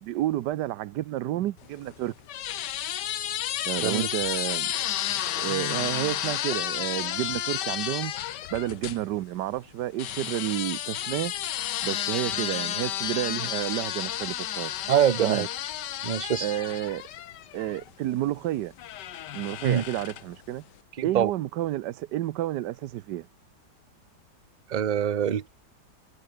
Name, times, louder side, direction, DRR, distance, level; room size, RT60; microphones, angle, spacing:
voice 1, 0.0-2.1 3.7-4.7 5.4-8.1 8.5-11.3 11.8-14.7 15.2-15.5 16.4-17.0 17.5-18.7 19.3-20.6 21.0-23.3, right 14 dB, 85° right, 1.3 m, -30 dB
sound 1, 1.6-9.0 10.0-17.9 18.8-20.4, left 12 dB, 85° left, 1.5 m, -32 dB
voice 2, 14.9-15.5 16.0-16.4 19.6-19.8 21.1-21.3 24.7-25.5, right 9 dB, 40° right, 0.6 m, -24 dB
omnidirectional pair, 1.8 m